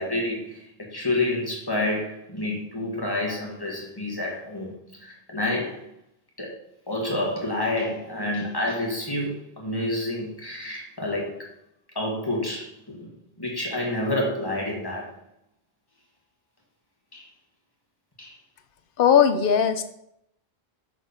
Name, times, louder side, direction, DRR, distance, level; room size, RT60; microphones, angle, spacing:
voice 1, 0.0-5.8 6.4-6.5 6.9-11.5 11.9-13.1 13.4-15.1 17.1-17.3 18.2-18.4, left 1 dB, 20° left, -2 dB, 1.7 m, -29 dB
voice 2, 19.0-19.8, left 8 dB, 60° left, 9 dB, 0.8 m, -18 dB
6.3 x 4.7 x 5.1 m, 0.77 s
omnidirectional pair, 1.0 m